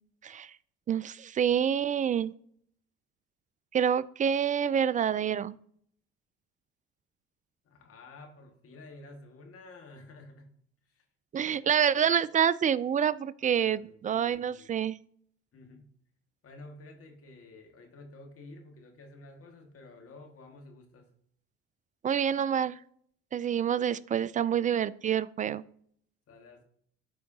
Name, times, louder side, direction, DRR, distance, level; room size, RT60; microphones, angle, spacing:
voice 1, 0.9-2.3 3.7-5.6 11.3-15.0 22.0-22.8 23.3-25.6, right 8 dB, 25° right, 19 dB, 0.3 m, -27 dB
voice 2, 7.6-10.5 10.9-11.1 11.4-12.0 13.4-14.8 15.5-15.9 16.4-21.1 26.3-26.6, left 2 dB, 50° left, 4 dB, 1.9 m, -51 dB
12.5 x 4.7 x 2.8 m, 0.63 s
hypercardioid pair, 60°, 31 cm